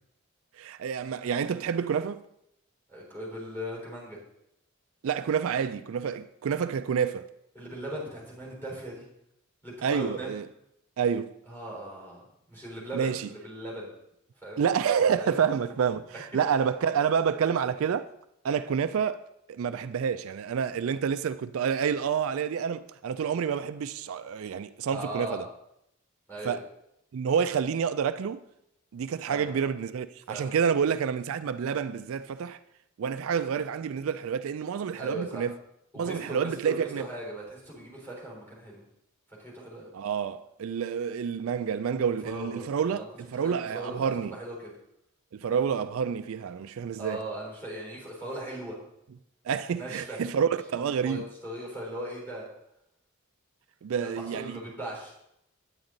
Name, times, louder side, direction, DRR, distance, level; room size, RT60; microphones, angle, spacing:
voice 1, 0.6-2.2 5.0-7.3 9.8-10.5 11.0-11.3 12.9-13.3 14.6-18.1 18.4-19.2 19.5-25.4 26.4-26.6 27.1-28.4 28.9-32.6 33.0-35.5 36.0-37.0 39.9-44.3 45.3-47.2 49.5-51.3 53.8-54.6, right 7 dB, 70° right, 0.3 m, -28 dB
voice 2, 2.9-4.2 7.5-9.0 9.6-10.4 11.5-12.2 12.5-13.9 14.4-14.7 15.1-15.4 24.9-25.5 26.3-26.6 29.3-29.6 30.3-30.6 35.0-35.5 35.9-38.8 39.4-39.9 42.0-43.1 43.3-44.7 47.0-48.8 49.7-50.2 51.0-52.4 54.0-55.1, right 1 dB, 10° left, 4.1 m, -38 dB
9.7 x 8.8 x 3.9 m
head